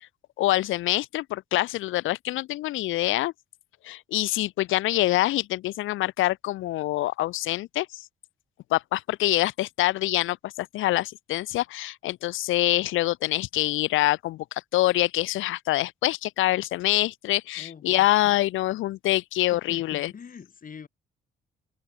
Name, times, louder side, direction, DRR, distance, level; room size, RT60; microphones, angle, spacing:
voice 1, 0.4-3.3 3.8-7.9 8.7-14.4 14.7-20.1, left 16 dB, 85° left, 0.9 m, -25 dB
voice 2, 17.5-18.1 19.4-20.9, left 6 dB, 45° left, 3.2 m, -43 dB
cardioid pair, 90°, 20 cm